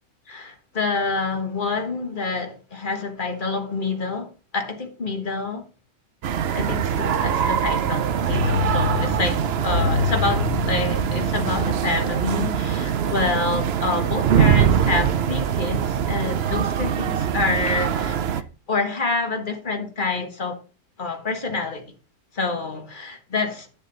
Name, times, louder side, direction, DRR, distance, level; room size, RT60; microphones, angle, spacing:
voice 1, 0.3-5.6 6.5-20.6 21.0-21.9 22.3-23.7, left 3 dB, 35° left, 1.5 m, -27 dB
sound 1, 6.2-18.4, right 8 dB, 55° right, 0.8 m, -23 dB
sound 2, 8.3-13.0 13.3-13.4, left 5 dB, 50° left, 2.8 m, -28 dB
10.5 x 7.5 x 3.9 m
omnidirectional pair, 1.6 m